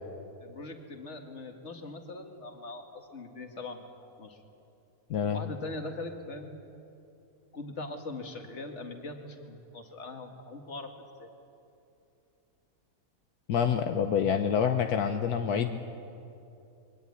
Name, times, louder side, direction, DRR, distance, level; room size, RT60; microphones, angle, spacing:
voice 1, 0.4-3.9 4.2-4.4 5.3-6.7 7.5-11.3, left 2 dB, 45° left, 4 dB, 2.2 m, -41 dB
voice 2, 5.1-5.5 13.5-15.8, left 7 dB, 80° left, 6 dB, 1.4 m, -27 dB
22.5 x 18.0 x 9.7 m, 2.7 s
omnidirectional pair, 1.6 m